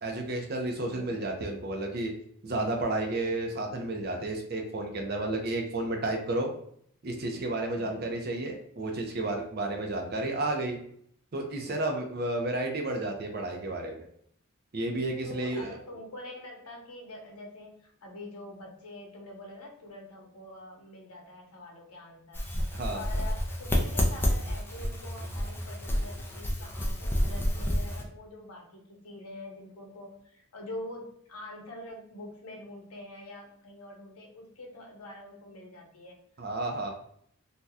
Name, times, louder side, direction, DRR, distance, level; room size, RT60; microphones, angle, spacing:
voice 1, 0.0-2.1 2.4-6.5 7.0-10.8 11.3-14.1 14.7-15.8 22.7-23.0 36.4-36.9, right 2 dB, 45° right, 3 dB, 0.5 m, -32 dB
voice 2, 0.8-1.2 7.7-8.1 15.2-22.4 22.9-36.2, left 1 dB, 90° left, 0 dB, 0.8 m, -45 dB
sound 1, 22.3-28.0, equal, 10° left, 0.4 m, -29 dB
2.7 x 2.2 x 3.4 m, 0.65 s
head